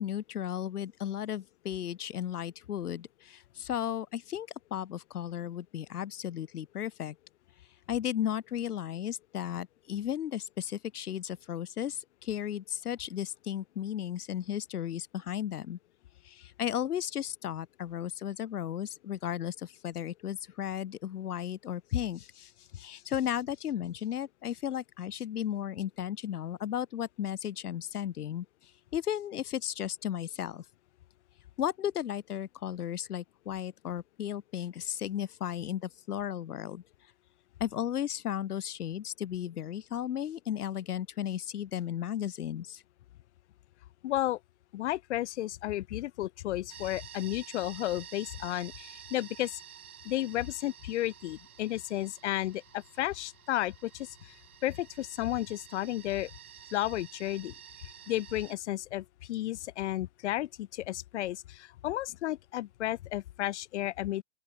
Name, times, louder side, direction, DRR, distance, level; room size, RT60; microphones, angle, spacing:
voice 1, 0.0-7.1 7.9-15.8 16.2-30.6 31.6-36.8 37.6-42.8, left 10 dB, 90° left, 1.1 m, -35 dB
voice 2, 44.0-44.4 44.7-49.6 50.0-54.3 54.6-56.3 56.7-57.5 58.1-64.2, left 15 dB, 50° left, 0.7 m, -33 dB
sound 1, 46.7-58.5, right 9 dB, 75° right, 3.4 m, -51 dB
open air
hypercardioid pair, 150°, 44 cm